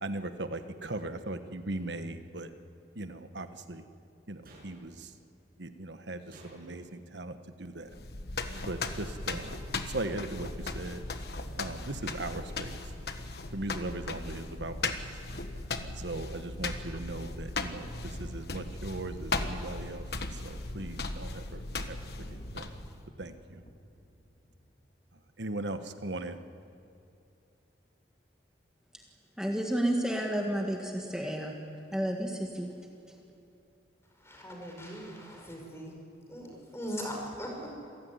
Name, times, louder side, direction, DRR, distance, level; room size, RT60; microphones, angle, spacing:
voice 1, 0.0-2.5 2.9-3.8 4.3-5.1 5.6-7.9 8.6-11.0 11.6-12.8 13.5-15.0 15.8-20.0 20.3-22.0 22.3-22.7 23.2-23.6 25.4-26.4, right 2 dB, 75° right, 9 dB, 1.3 m, -39 dB
sound 1, 4.4-5.2 6.3-7.0 8.5-9.1 10.0-10.5, right 1 dB, 55° right, 7.9 m, -54 dB
sound 2, 7.9-23.0, left 3 dB, 60° left, 1.4 m, -37 dB
Thunder, 17.5-24.8 26.0-26.1, equal, 40° left, 2.8 m, -52 dB
voice 2, 29.4-31.5 31.9-32.7, right 1 dB, 5° right, 1 dB, 1.8 m, -31 dB
voice 3, 34.2-35.9 36.3-37.7, equal, 15° left, 0 dB, 5.2 m, -40 dB
27.0 x 16.0 x 9.7 m, 2.6 s
head